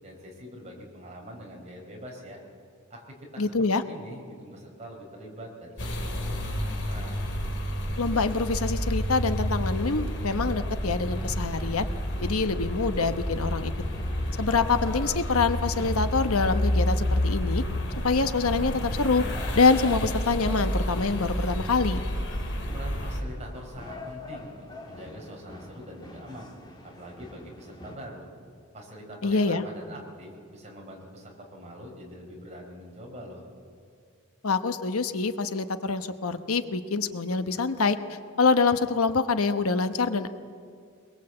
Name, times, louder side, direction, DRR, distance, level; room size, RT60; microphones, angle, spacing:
voice 1, 0.0-2.4 2.9-7.2 22.7-26.5 26.8-28.3 28.7-33.5, equal, 30° right, -1 dB, 4.5 m, -44 dB
voice 2, 3.4-3.8 8.0-11.9 12.2-13.7 14.4-17.6 18.0-19.2 19.5-22.0 29.2-29.6 34.4-40.3, left 4 dB, 85° left, 9 dB, 1.1 m, -25 dB
sound 1, 5.8-23.2, left 1 dB, 55° left, 2.6 m, -30 dB
sound 2, 9.8-28.0, left 2 dB, 20° left, 1.7 m, -46 dB
22.0 x 21.5 x 7.9 m, 2.2 s
head